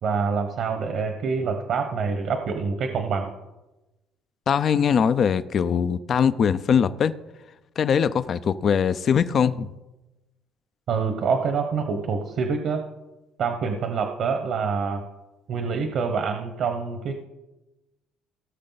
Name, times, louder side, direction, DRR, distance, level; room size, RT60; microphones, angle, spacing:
voice 1, 0.0-3.3 10.9-12.8 13.4-15.0 15.5-17.2, right 5 dB, 60° right, 1.1 m, -26 dB
voice 2, 4.5-7.1 7.8-9.7, left 7 dB, 50° left, 0.5 m, -21 dB
18.0 x 6.6 x 4.0 m
cardioid pair, 95°, 0 cm